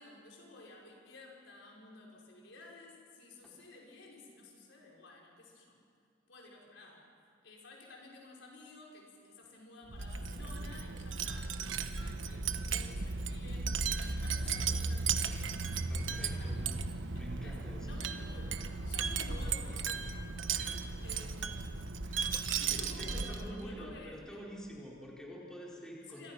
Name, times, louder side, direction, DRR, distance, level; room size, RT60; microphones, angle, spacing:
voice 1, 0.0-5.8 6.3-7.1 7.4-15.6 16.1-16.6 17.1-20.0 21.0-22.0 22.4-24.4 25.8-26.3, left 2 dB, 75° left, -1 dB, 5.6 m, -53 dB
Wind chime, 9.9-23.6, right 4 dB, 80° right, 1.2 m, -35 dB
voice 2, 15.9-16.7 17.2-18.0 20.6-21.0 22.0-22.4 22.7-26.3, equal, 5° left, -4 dB, 4.5 m, -48 dB
28.0 x 25.5 x 5.8 m, 2.3 s
head